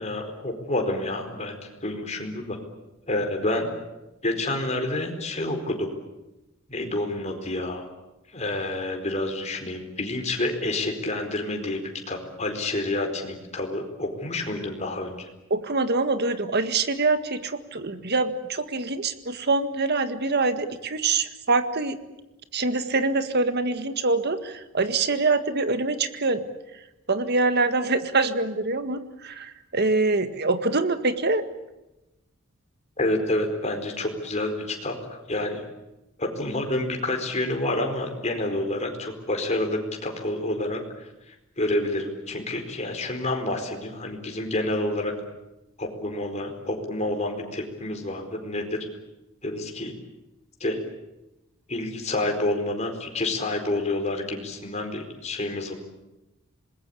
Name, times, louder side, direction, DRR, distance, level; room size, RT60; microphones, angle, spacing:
voice 1, 0.0-2.6 3.1-3.7 4.2-5.9 6.7-7.9 8.3-15.3 33.0-35.6 36.2-45.1 45.8-48.8 49.4-49.9 50.6-50.8 51.7-55.7, left 1 dB, 35° left, 4 dB, 4.5 m, -28 dB
voice 2, 15.5-22.0 22.5-26.4 27.1-31.4, right 3 dB, 50° right, 10 dB, 1.8 m, -24 dB
26.5 x 21.0 x 8.5 m, 0.97 s
head